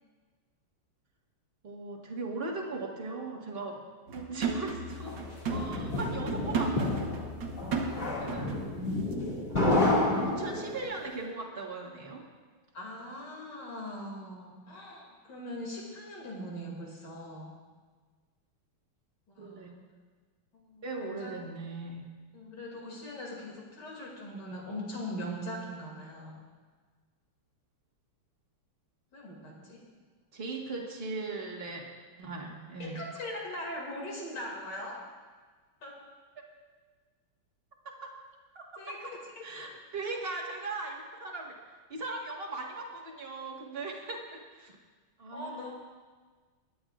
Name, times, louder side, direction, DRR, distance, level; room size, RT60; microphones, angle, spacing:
voice 1, 1.6-3.8 4.1-7.1 8.2-8.6 10.2-12.2 19.4-19.7 20.8-22.1 30.3-31.9 32.2-33.0 38.5-38.6 39.4-40.9 41.2-44.7 45.2-45.7, right 3 dB, 30° right, -1 dB, 1.5 m, -39 dB
sound 1, 4.1-8.7 9.0-9.1, right 4 dB, 60° right, 1.7 m, -35 dB
sound 2, 5.1-10.9, left 1 dB, 25° left, 2.1 m, -30 dB
voice 2, 12.7-17.5 19.3-19.8 20.5-21.3 22.3-26.3 29.1-29.9 32.8-35.0 35.8-36.0 38.8-39.1 39.5-39.7 45.3-45.7, left 1 dB, 50° left, -2 dB, 2.9 m, -41 dB
21.5 x 10.5 x 2.4 m, 1.5 s
omnidirectional pair, 2.4 m